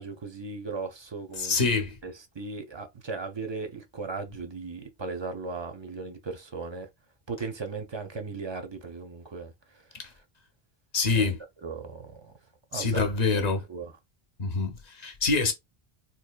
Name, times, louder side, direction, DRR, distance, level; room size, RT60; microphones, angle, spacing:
voice 1, 0.0-6.9 7.3-9.8 11.1-11.3 11.6-12.3 12.7-13.1 13.7-13.9, right 4 dB, 45° right, 0.4 m, -37 dB
voice 2, 1.4-2.0 9.9-10.1 10.9-11.4 12.7-13.6 14.4-15.5, left 4 dB, 45° left, 0.8 m, -26 dB
4.1 x 2.7 x 2.2 m
omnidirectional pair, 1.1 m